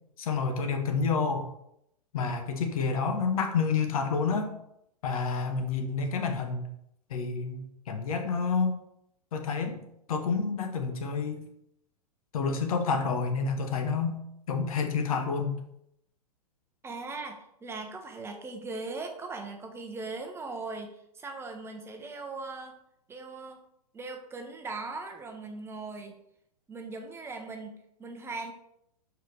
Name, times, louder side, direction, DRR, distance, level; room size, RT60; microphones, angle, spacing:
voice 1, 0.2-1.5 2.1-4.5 5.0-6.6 7.1-8.8 9.3-9.8 10.1-11.5 12.3-14.2 14.5-15.6, left 5 dB, 65° left, 6 dB, 1.1 m, -29 dB
voice 2, 16.8-22.8 23.1-23.6 23.9-26.2 26.7-28.5, right 3 dB, 10° right, 4 dB, 0.9 m, -39 dB
6.4 x 4.6 x 3.3 m, 0.77 s
hypercardioid pair, 110°, 20 cm